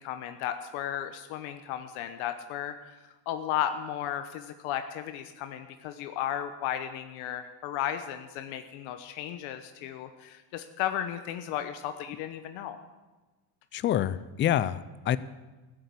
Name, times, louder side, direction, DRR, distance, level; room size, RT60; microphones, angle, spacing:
voice 1, 0.0-12.8, left 11 dB, 70° left, 8 dB, 1.1 m, -34 dB
voice 2, 13.7-15.2, left 11 dB, 25° left, 16 dB, 0.4 m, -27 dB
14.5 x 8.0 x 8.4 m, 1.2 s
cardioid pair, 130°, 49 cm